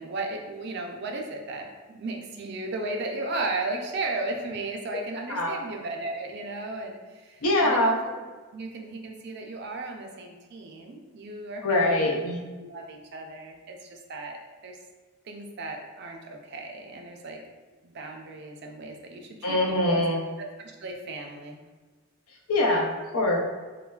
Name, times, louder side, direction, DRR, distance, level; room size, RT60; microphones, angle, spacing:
voice 1, 0.0-8.2 8.5-12.3 12.6-14.8 15.3-17.4 17.9-20.0 20.8-21.6, right 2 dB, 50° right, 2 dB, 0.3 m, -35 dB
voice 2, 7.4-8.0 11.6-12.4 19.4-20.2 22.5-23.4, left 1 dB, 80° left, 0 dB, 0.5 m, -23 dB
3.1 x 2.2 x 2.2 m, 1.3 s
head